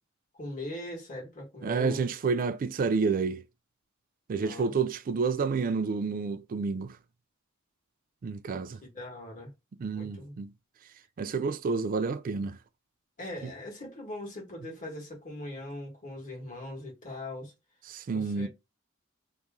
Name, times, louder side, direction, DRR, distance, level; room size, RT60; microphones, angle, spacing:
voice 1, 0.3-2.0 4.3-4.7 8.8-9.5 9.9-10.3 13.2-17.5 18.1-18.5, left 1 dB, 40° left, 1.6 m, -40 dB
voice 2, 1.6-3.4 4.3-7.0 8.2-8.8 9.8-10.5 11.2-12.6 13.4-13.5 17.9-18.5, right 4 dB, 40° right, 0.3 m, -29 dB
3.0 x 2.6 x 3.5 m
head